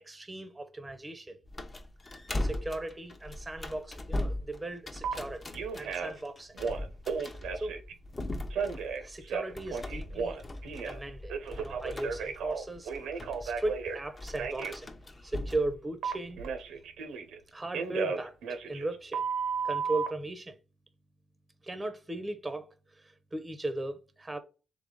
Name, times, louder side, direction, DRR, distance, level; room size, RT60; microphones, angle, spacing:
voice 1, 0.0-1.4 2.4-6.6 7.5-7.8 8.9-10.4 10.9-14.9 15.2-16.4 17.5-19.2 19.6-20.6 21.6-24.4, right 2 dB, 20° right, 0.6 m, -37 dB
sound 1, 1.5-15.7, left 1 dB, 30° left, 0.6 m, -39 dB
Telephone, 5.0-5.1 5.5-6.2 6.5-7.9 8.5-11.0 11.3-14.0 14.4-14.7 16.0-17.4 17.7-20.1, right 5 dB, 90° right, 0.6 m, -34 dB
3.4 x 3.3 x 3.8 m
cardioid pair, 85°, 0 cm